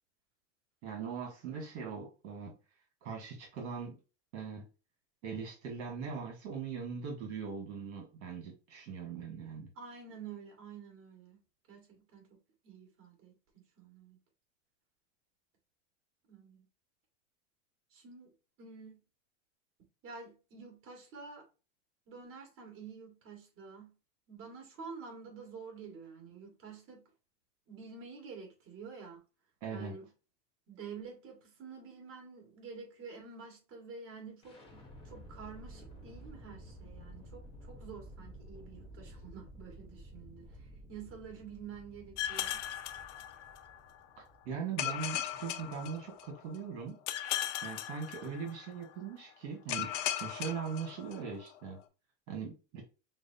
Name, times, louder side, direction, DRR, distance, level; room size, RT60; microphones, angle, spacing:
voice 1, 0.8-2.5 3.0-4.0 4.3-4.6 5.2-9.7 29.6-29.9 44.4-47.0 47.6-51.8 52.3-52.8, right 6 dB, 65° right, 1.4 m, -40 dB
voice 2, 9.8-11.4 11.7-13.3 13.8-14.2 16.3-16.6 17.9-18.3 18.6-19.0 20.0-21.4 22.1-23.9 24.3-27.0 27.7-29.2 29.7-30.1 30.7-34.6 35.0-40.4 40.9-42.6, right 5 dB, 35° right, 1.8 m, -49 dB
sound 1, 34.4-46.3, equal, 15° left, 0.9 m, -52 dB
sound 2, 42.2-43.8 44.8-46.5 47.1-48.7 49.7-51.4, left 12 dB, 75° left, 0.7 m, -37 dB
6.0 x 2.0 x 2.7 m
supercardioid pair, 145°, 37 cm